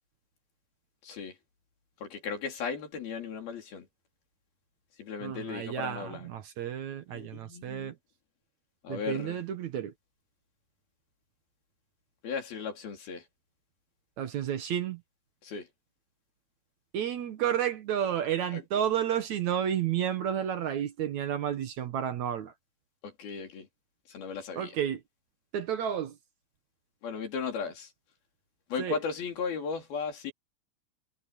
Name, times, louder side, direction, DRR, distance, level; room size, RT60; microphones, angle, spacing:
voice 1, 1.0-1.4 2.0-3.9 5.0-6.3 7.1-7.9 8.8-9.4 12.2-13.2 15.4-15.7 18.5-18.8 23.0-23.7 24.1-24.7 27.0-27.9 28.7-30.3, left 5 dB, 85° left, 5.6 m, -36 dB
voice 2, 5.2-8.0 8.9-9.9 14.2-15.0 16.9-22.5 24.6-25.0 25.5-26.1 28.8-29.0, right 9 dB, 65° right, 2.1 m, -31 dB
omnidirectional pair, 4.2 m